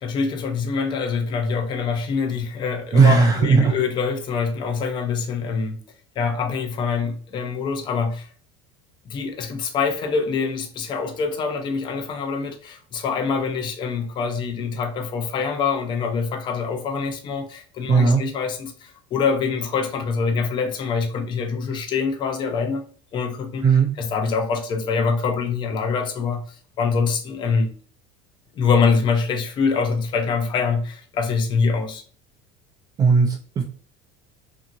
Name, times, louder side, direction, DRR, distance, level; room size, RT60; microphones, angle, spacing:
voice 1, 0.0-5.8 6.2-8.3 9.0-22.8 23.1-23.7 24.0-27.7 28.5-32.0, left 5 dB, 35° left, 5 dB, 0.6 m, -24 dB
voice 2, 2.9-3.7 17.9-18.2 23.6-23.9 33.0-33.6, right 5 dB, 30° right, 1 dB, 0.4 m, -16 dB
2.8 x 2.7 x 2.6 m, 0.43 s
cardioid pair, 140°, 13 cm